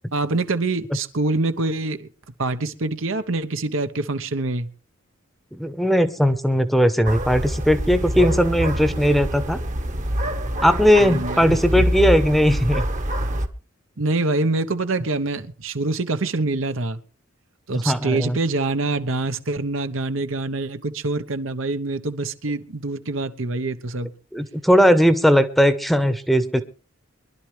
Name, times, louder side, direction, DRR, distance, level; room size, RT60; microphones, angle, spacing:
voice 1, 0.1-2.1 2.4-4.7 11.0-11.4 14.0-17.0 17.7-24.1, right 2 dB, 75° right, 1.0 m, -25 dB
voice 2, 5.5-9.6 10.6-12.8 17.9-18.4 24.3-26.6, equal, ahead, 0.9 m, -18 dB
sound 1, 7.1-13.5, equal, 40° right, 1.2 m, -25 dB
23.5 x 11.5 x 3.3 m
head